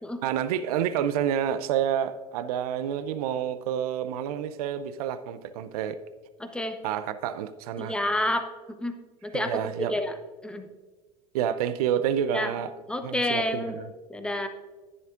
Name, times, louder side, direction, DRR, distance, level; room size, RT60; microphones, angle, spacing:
voice 1, 0.2-6.0 6.8-8.0 9.3-9.9 11.3-12.7 13.0-13.9, right 9 dB, 70° right, 0.5 m, -29 dB
voice 2, 6.4-6.8 7.8-8.5 8.8-8.9 9.2-10.1 10.4-10.6 12.3-12.5 12.9-13.7 14.1-14.5, left 1 dB, 5° left, 0.9 m, -29 dB
10.5 x 10.0 x 2.5 m
hypercardioid pair, 85°, 20 cm